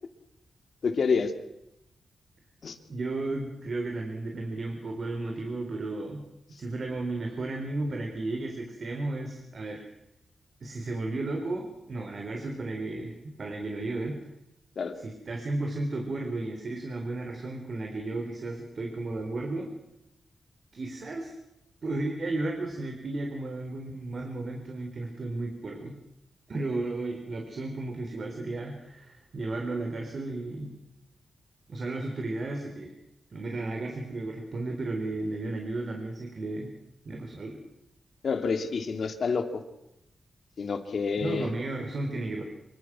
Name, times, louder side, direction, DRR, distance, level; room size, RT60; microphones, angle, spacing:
voice 1, 0.8-1.3 2.6-2.8 14.8-14.9 38.2-39.6 40.6-41.5, left 5 dB, 65° left, 7 dB, 2.7 m, -28 dB
voice 2, 2.9-6.2 6.6-9.8 10.6-14.2 14.9-19.7 20.7-21.3 21.8-25.9 26.5-30.7 31.7-32.9 33.3-36.7 37.0-37.6 41.2-42.4, right 2 dB, 50° right, 3 dB, 3.9 m, -34 dB
26.0 x 24.0 x 6.1 m, 0.84 s
wide cardioid pair, 105°, 0 cm